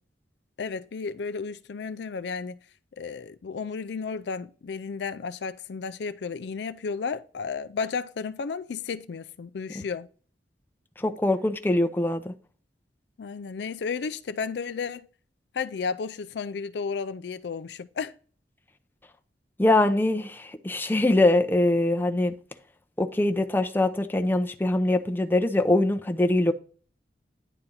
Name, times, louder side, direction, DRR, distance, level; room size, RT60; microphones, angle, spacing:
voice 1, 0.6-2.6 3.0-10.1 13.2-15.1 15.5-18.1, left 5 dB, 65° left, 0.4 m, -33 dB
voice 2, 11.0-12.3 19.6-22.3 23.0-26.5, left 2 dB, 10° left, 0.6 m, -23 dB
10.0 x 4.3 x 3.8 m
head